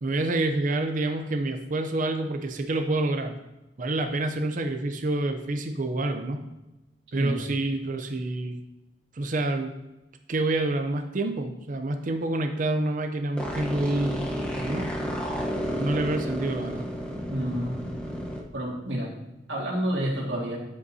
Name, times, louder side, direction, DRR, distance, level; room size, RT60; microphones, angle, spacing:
voice 1, 0.0-3.4 3.8-6.5 7.1-8.6 9.1-9.7 10.3-14.9 15.8-16.8, right 2 dB, 45° right, 5 dB, 0.6 m, -28 dB
sound 1, 13.4-18.4, equal, 5° left, 1.0 m, -31 dB
voice 2, 17.3-17.8 18.5-19.1 19.5-20.6, equal, 90° right, -3 dB, 2.1 m, -29 dB
13.0 x 5.2 x 2.8 m, 0.99 s
head